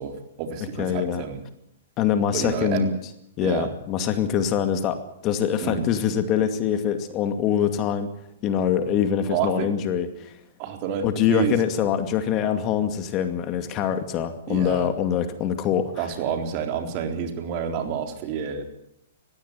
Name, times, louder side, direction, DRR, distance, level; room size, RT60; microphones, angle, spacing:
voice 1, 0.0-1.4 2.3-2.9 3.4-3.7 5.6-5.9 9.3-9.7 10.6-11.6 14.5-14.9 16.0-18.6, right 7 dB, 45° right, 5 dB, 3.8 m, -29 dB
voice 2, 0.8-1.2 2.0-2.9 3.4-8.1 8.4-10.3 11.0-16.0, left 9 dB, 35° left, 8 dB, 2.4 m, -24 dB
19.5 x 16.0 x 9.5 m, 0.79 s
hypercardioid pair, 120°, 0 cm